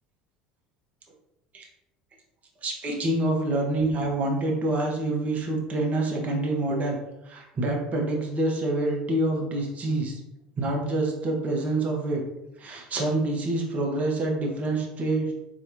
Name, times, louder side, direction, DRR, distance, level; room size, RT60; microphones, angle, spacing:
voice 1, 2.6-7.0 7.2-10.2 10.6-12.2 12.6-15.3, right 2 dB, 35° right, 0 dB, 1.1 m, -26 dB
4.1 x 3.2 x 2.6 m, 0.92 s
hypercardioid pair, 70°, 4 cm